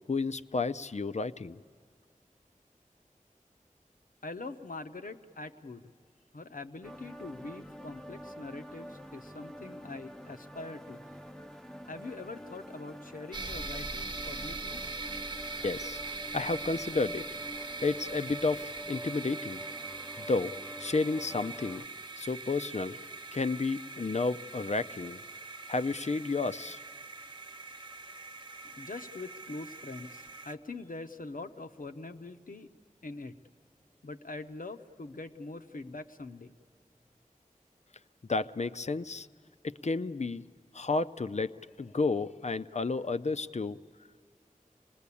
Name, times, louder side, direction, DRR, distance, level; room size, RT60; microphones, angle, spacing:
voice 1, 0.1-1.6 15.6-16.0 16.3-17.2 17.8-19.6 20.2-20.5 20.8-21.8 22.2-23.0 23.3-25.2 25.7-26.8 38.3-39.3 39.6-40.4 40.7-43.8, left 3 dB, 55° left, 13 dB, 0.5 m, -31 dB
voice 2, 4.2-5.9 6.3-11.0 11.9-14.8 28.6-32.7 33.0-33.4 34.0-36.6, left 3 dB, 80° left, 7 dB, 0.9 m, -43 dB
sound 1, 6.8-21.9, equal, 5° left, 0.6 m, -46 dB
sound 2, 13.3-30.5, right 3 dB, 35° right, 0.9 m, -42 dB
25.5 x 20.0 x 8.4 m, 2.1 s
wide cardioid pair, 50°, 14 cm